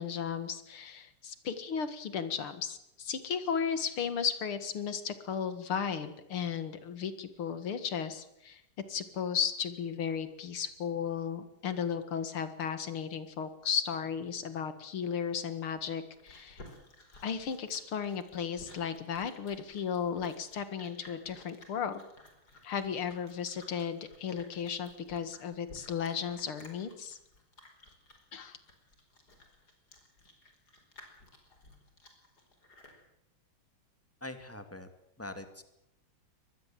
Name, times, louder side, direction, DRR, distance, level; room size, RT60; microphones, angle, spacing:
voice 1, 0.0-8.6 8.9-16.7 17.2-22.0 22.6-27.2 28.3-28.6, left 7 dB, 80° left, 11 dB, 2.7 m, -35 dB
Chewing mastication, 16.1-33.0, left 2 dB, 45° left, 5.2 m, -56 dB
voice 2, 34.2-34.9 35.2-35.6, left 1 dB, 5° left, 8 dB, 2.2 m, -43 dB
24.0 x 20.0 x 7.6 m, 0.82 s
omnidirectional pair, 2.4 m